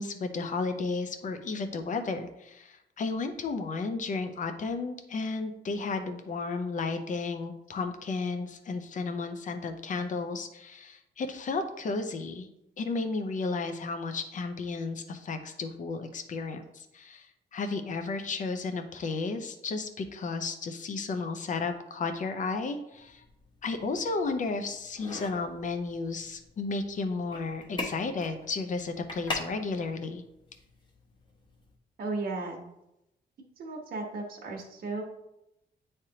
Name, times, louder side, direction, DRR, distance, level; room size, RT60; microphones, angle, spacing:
voice 1, 0.0-12.5 12.8-17.3 17.5-23.2 23.6-30.2, left 3 dB, 45° left, 7 dB, 0.7 m, -33 dB
sound 1, 22.9-31.7, left 2 dB, 25° left, 1.0 m, -43 dB
voice 2, 32.0-32.6 33.6-35.0, right 3 dB, 55° right, 0 dB, 1.2 m, -35 dB
9.8 x 3.3 x 2.9 m, 0.85 s
cardioid pair, 135°, 18 cm